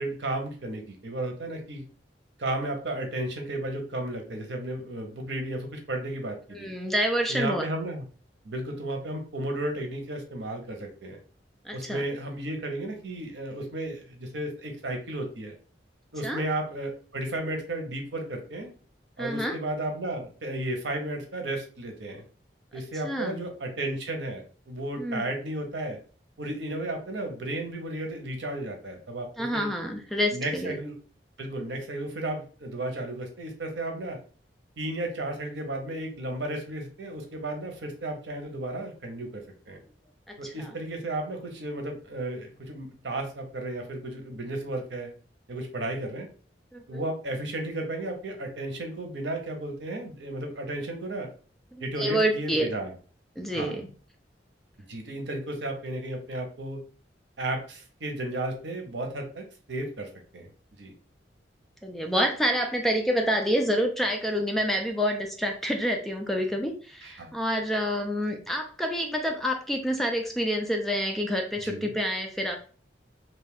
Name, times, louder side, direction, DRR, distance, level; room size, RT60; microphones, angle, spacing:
voice 1, 0.0-1.8 2.4-6.7 7.3-8.0 8.4-11.2 11.7-15.5 16.1-18.7 19.2-22.2 22.7-26.0 26.4-29.7 30.3-30.9 31.4-34.2 34.8-39.8 40.4-45.1 45.5-46.3 46.9-51.3 51.8-52.9 53.5-53.8 54.9-56.8 57.4-60.5 60.8-60.9 67.0-67.3 71.6-71.9, right 1 dB, 80° right, 3 dB, 0.8 m, -33 dB
voice 2, 6.5-7.7 11.6-12.0 16.2-16.4 19.2-19.6 23.0-23.4 25.0-25.2 29.4-30.8 40.3-40.8 46.7-47.1 51.7-52.7 53.4-53.9 61.8-72.5, equal, ahead, 3 dB, 0.3 m, -28 dB
2.6 x 2.3 x 3.4 m, 0.40 s
head